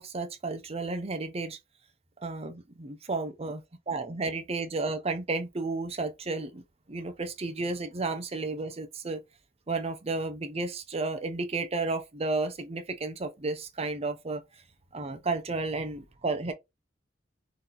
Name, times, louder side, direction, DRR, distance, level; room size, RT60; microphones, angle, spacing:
voice 1, 0.0-1.6 2.2-6.6 6.9-9.2 9.7-14.4 14.9-16.5, right 3 dB, 30° right, 0.6 m, -32 dB
3.9 x 2.8 x 4.1 m
head